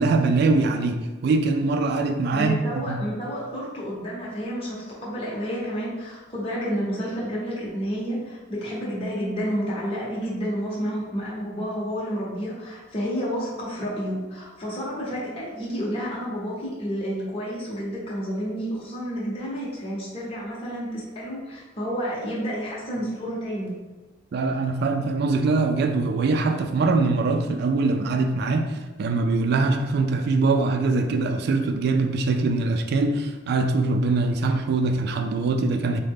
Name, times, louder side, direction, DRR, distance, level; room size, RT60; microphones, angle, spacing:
voice 1, 0.0-3.0 24.3-36.0, right 3 dB, 60° right, 6 dB, 0.3 m, -23 dB
voice 2, 2.3-23.7, equal, 30° left, -6 dB, 0.8 m, -30 dB
3.7 x 2.1 x 3.5 m, 1.3 s
head